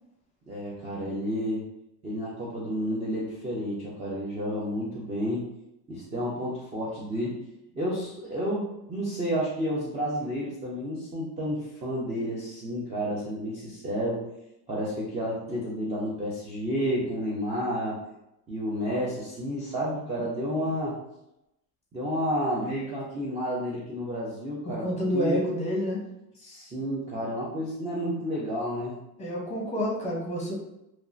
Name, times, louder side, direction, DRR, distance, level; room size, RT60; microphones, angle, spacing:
voice 1, 0.5-1.6 2.0-5.4 5.9-7.4 7.7-14.3 14.7-18.0 18.5-21.0 21.9-24.9 25.1-25.4 26.4-29.0, equal, 15° right, -6 dB, 0.3 m, -31 dB
voice 2, 24.7-26.0 29.2-30.5, equal, 15° left, -4 dB, 0.7 m, -29 dB
2.8 x 2.4 x 2.4 m, 0.87 s
cardioid pair, 145°, 42 cm